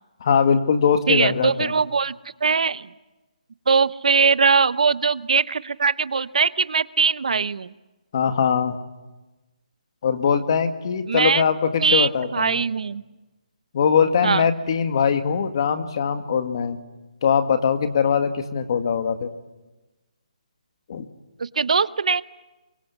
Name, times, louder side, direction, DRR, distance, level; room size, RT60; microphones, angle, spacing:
voice 1, 0.2-1.7 8.1-8.8 10.0-12.6 13.7-16.8 17.2-19.3 20.9-21.1, left 6 dB, 35° left, 8 dB, 1.8 m, -21 dB
voice 2, 1.1-2.1 2.4-2.9 3.7-7.7 11.1-11.4 11.8-13.0 14.2-14.5 21.4-22.2, right 5 dB, 60° right, 16 dB, 0.8 m, -21 dB
27.5 x 23.5 x 8.3 m, 1.1 s
hypercardioid pair, 170°, 4 cm